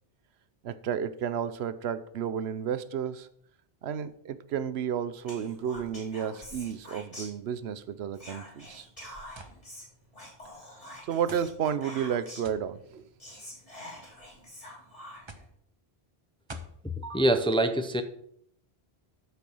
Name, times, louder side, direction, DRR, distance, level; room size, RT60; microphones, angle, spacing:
voice 1, 0.6-3.3 3.8-8.9 11.1-13.0, right 8 dB, 85° right, 13 dB, 0.9 m, -32 dB
Whispering, 5.2-7.8 8.1-12.6 12.9-13.0 13.2-15.4, left 1 dB, 35° left, 3.5 m, -46 dB
sound 1, 9.4-9.6 10.5-10.6 11.3-11.5 12.4-12.7 13.7-14.1 15.3-15.6 16.5-16.8, right 3 dB, 30° right, 0.8 m, -46 dB
voice 2, 16.8-18.0, right 1 dB, 5° left, 8 dB, 0.5 m, -25 dB
13.5 x 4.6 x 5.4 m, 0.69 s
omnidirectional pair, 1.0 m